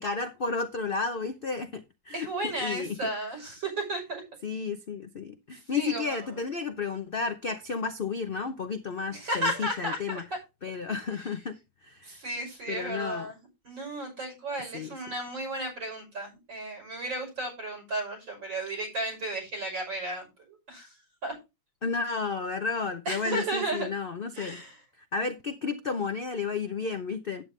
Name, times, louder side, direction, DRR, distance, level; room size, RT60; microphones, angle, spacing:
voice 1, 0.0-3.0 4.4-10.2 10.6-12.2 12.7-13.3 14.7-15.0 21.8-24.6 25.0-27.4, left 4 dB, 85° left, 0.4 m, -32 dB
voice 2, 2.1-4.2 5.5-6.3 9.1-10.2 11.2-11.3 12.0-13.4 13.6-21.0 21.2-21.4 23.1-23.9 24.3-24.8, right 1 dB, 80° right, 7.2 m, -34 dB
9.8 x 8.9 x 3.2 m
omnidirectional pair, 2.0 m